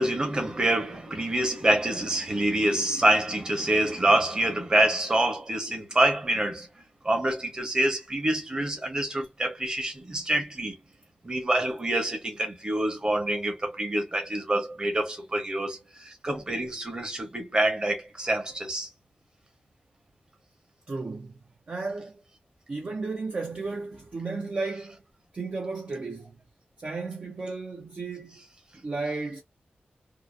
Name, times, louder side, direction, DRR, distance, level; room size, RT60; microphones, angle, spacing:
voice 1, 0.0-6.7 7.0-10.8 11.2-18.9, right 1 dB, 25° right, 0.9 m, -26 dB
voice 2, 20.9-21.4 21.7-22.2 22.7-25.0 25.3-26.4 26.8-28.4 28.8-29.4, right 3 dB, 40° right, 0.4 m, -34 dB
2.7 x 2.3 x 2.3 m
wide cardioid pair, 145°, 3 cm